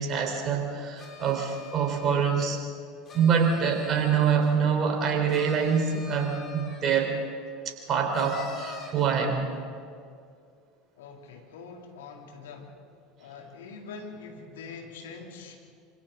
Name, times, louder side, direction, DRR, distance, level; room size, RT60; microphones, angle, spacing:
voice 1, 0.0-2.6 3.1-7.2 7.6-9.6, right 6 dB, 40° right, 3 dB, 4.1 m, -25 dB
sound 1, 1.0-2.5 3.1-4.5 5.3-7.0 8.1-9.1, left 3 dB, 35° left, 5.5 m, -44 dB
voice 2, 11.0-12.8 13.2-15.6, left 4 dB, 70° left, 1 dB, 3.1 m, -44 dB
26.5 x 26.5 x 4.0 m, 2.3 s
figure-of-eight pair, 75°, 0 cm